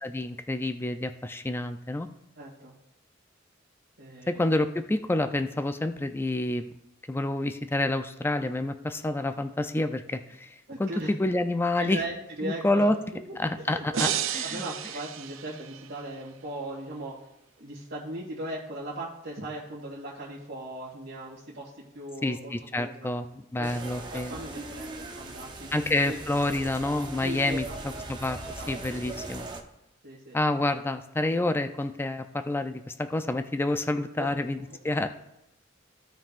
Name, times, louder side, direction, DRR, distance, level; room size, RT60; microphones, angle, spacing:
voice 1, 0.0-2.1 4.3-6.7 7.1-10.5 10.8-12.0 12.4-13.0 13.4-14.6 22.2-23.3 23.5-24.3 25.7-27.6 28.1-28.4 28.7-29.5 30.3-34.6 34.8-35.1, left 2 dB, 10° left, 9 dB, 0.4 m, -28 dB
voice 2, 2.4-2.7 4.0-4.4 10.7-11.1 11.8-12.9 13.3-14.1 14.4-17.2 17.6-23.2 23.6-23.7 24.1-26.5 27.2-27.8 28.6-29.1 30.0-30.4 34.2-34.3 34.7-34.8, right 1 dB, 60° right, -7 dB, 1.9 m, -38 dB
sound 1, 13.9-16.1, right 9 dB, 85° right, 0.5 m, -32 dB
sound 2, 23.6-29.6, right 2 dB, 25° right, 0.8 m, -40 dB
15.5 x 5.5 x 2.5 m, 0.86 s
head